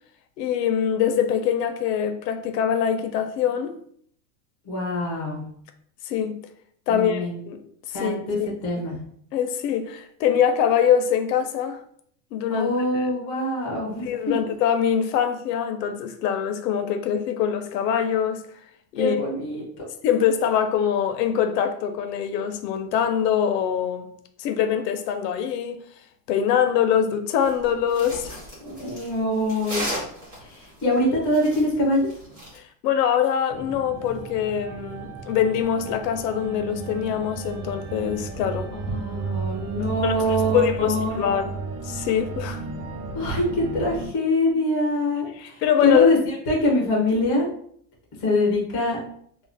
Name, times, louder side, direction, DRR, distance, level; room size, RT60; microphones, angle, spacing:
voice 1, 0.4-3.7 6.1-6.4 6.9-7.6 7.9-8.5 9.3-11.8 12.3-13.1 14.0-18.4 18.9-19.2 20.0-24.1 24.4-25.8 26.3-28.4 32.5-38.7 40.0-41.6 41.8-42.6 45.4-46.1, left 8 dB, 75° left, 0.5 m, -23 dB
voice 2, 4.7-5.4 6.9-7.3 7.9-9.0 12.5-14.1 19.0-19.6 28.6-29.9 30.5-32.1 38.7-41.2 43.1-47.5 48.2-49.0, left 1 dB, 25° left, 0.3 m, -24 dB
sound 1, 27.4-32.6, equal, 20° right, 0.8 m, -35 dB
sound 2, 33.5-44.1, right 4 dB, 65° right, 0.7 m, -34 dB
2.4 x 2.1 x 3.3 m
supercardioid pair, 175°, 49 cm